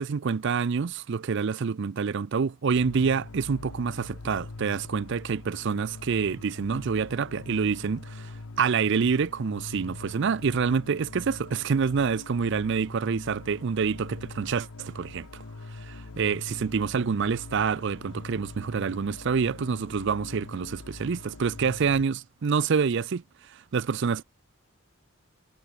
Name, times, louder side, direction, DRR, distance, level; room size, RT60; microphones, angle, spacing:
voice 1, 0.0-15.4 15.7-24.2, right 5 dB, 55° right, 0.5 m, -27 dB
sound 1, 2.8-22.1, left 3 dB, 75° left, 1.0 m, -43 dB
head